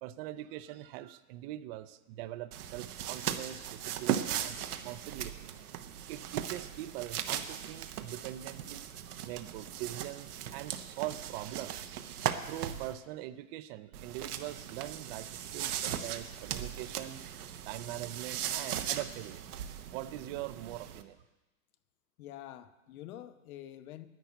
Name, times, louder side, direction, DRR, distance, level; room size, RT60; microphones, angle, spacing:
voice 1, 0.0-5.3 6.1-12.0 12.4-17.2 17.6-19.4 19.9-21.2, right 14 dB, 45° right, 14 dB, 0.5 m, -42 dB
sound 1, 2.5-12.9 13.9-21.0, right 10 dB, 85° right, 1.1 m, -38 dB
voice 2, 22.2-24.1, left 12 dB, 70° left, 11 dB, 1.0 m, -47 dB
10.5 x 9.9 x 8.0 m, 1.1 s
hypercardioid pair, 125°, 44 cm